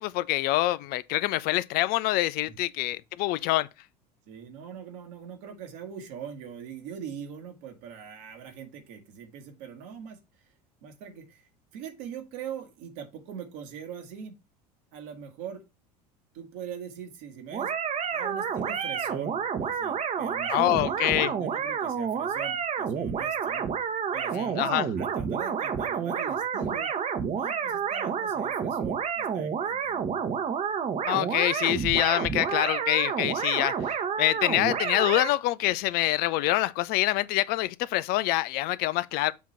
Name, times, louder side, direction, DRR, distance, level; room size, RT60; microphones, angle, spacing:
voice 1, 0.0-3.7 20.5-21.3 24.3-24.9 31.1-39.3, left 16 dB, 45° left, 0.4 m, -26 dB
voice 2, 4.3-10.2 10.8-11.5 11.7-14.3 14.9-15.6 16.3-17.7 18.1-23.7 24.1-26.9 27.3-30.1, right 8 dB, 60° right, 1.6 m, -42 dB
sound 1, 17.5-35.3, right 7 dB, 35° right, 1.0 m, -29 dB
7.3 x 3.0 x 5.5 m
figure-of-eight pair, 75°, 21 cm